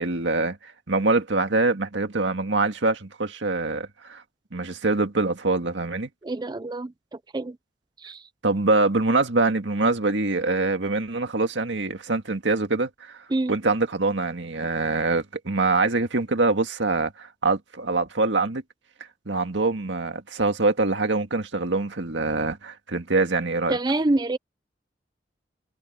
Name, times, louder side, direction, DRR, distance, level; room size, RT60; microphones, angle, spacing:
voice 1, 0.0-4.2 4.5-6.1 8.4-13.2 13.5-18.6 19.3-23.8, right 3 dB, 85° right, 1.9 m, -24 dB
voice 2, 6.2-6.9 7.3-7.6 8.0-8.2 13.3-13.5 23.7-24.4, right 2 dB, 25° right, 0.5 m, -25 dB
head